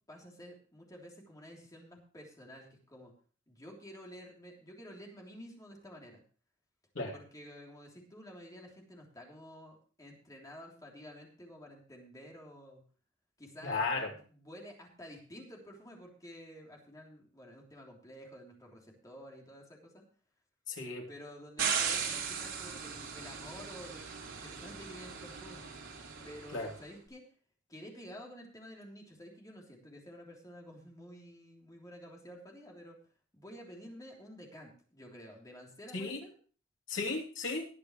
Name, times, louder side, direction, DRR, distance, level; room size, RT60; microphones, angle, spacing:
voice 1, 0.1-3.1 3.5-6.2 7.1-12.8 13.4-20.0 21.1-25.6 26.2-27.2 27.7-33.0 33.3-36.3, equal, 20° left, -1 dB, 3.3 m, -51 dB
voice 2, 13.6-14.1 20.7-21.1 26.5-26.7 35.9-36.2 36.9-37.7, left 3 dB, 75° left, -1 dB, 3.2 m, -35 dB
sound 1, 21.6-26.7, right 6 dB, 80° right, 3.5 m, -37 dB
19.5 x 8.4 x 3.2 m, 0.40 s
head